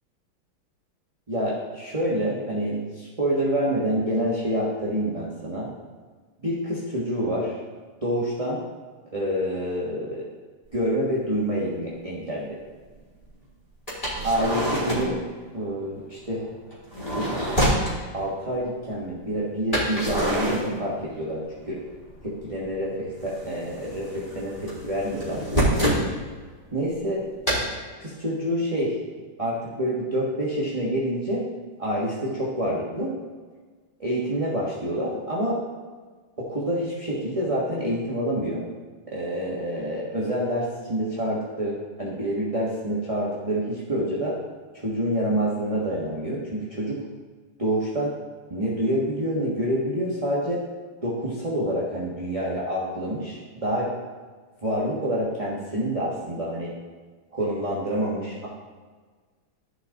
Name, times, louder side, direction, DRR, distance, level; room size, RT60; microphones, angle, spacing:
voice 1, 1.3-5.7 6.4-7.6 8.0-8.6 9.1-10.2 10.7-12.6 14.2-15.2 15.5-16.5 17.1-17.6 18.1-21.8 22.2-25.4 26.7-27.2 28.0-28.9 29.4-31.4 31.8-33.1 34.0-35.6 36.4-38.6 39.1-44.4 44.7-47.0 47.6-48.1 48.5-50.6 51.0-53.9 54.6-56.7 57.3-58.5, equal, 20° right, -6 dB, 1.2 m, -27 dB
sound 1, 10.8-10.9 11.5-11.6 13.9-15.2 16.7-18.0 19.7-21.4 21.6-22.5 22.8-26.1 27.5-27.6, equal, 15° left, 3.1 m, -26 dB
13.0 x 5.9 x 3.9 m, 1.5 s
omnidirectional pair, 2.4 m